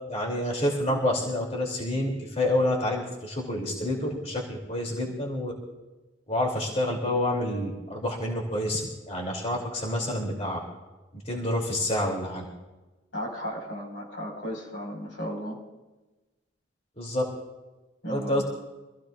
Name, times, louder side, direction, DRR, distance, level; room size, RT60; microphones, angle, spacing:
voice 1, 0.1-5.5 6.3-10.6 11.1-12.4 17.0-17.2 18.1-18.4, left 1 dB, 35° left, -1 dB, 3.0 m, -28 dB
voice 2, 13.1-15.6 18.0-18.4, equal, 80° left, 0 dB, 5.1 m, -35 dB
26.0 x 15.5 x 2.5 m, 1.1 s
head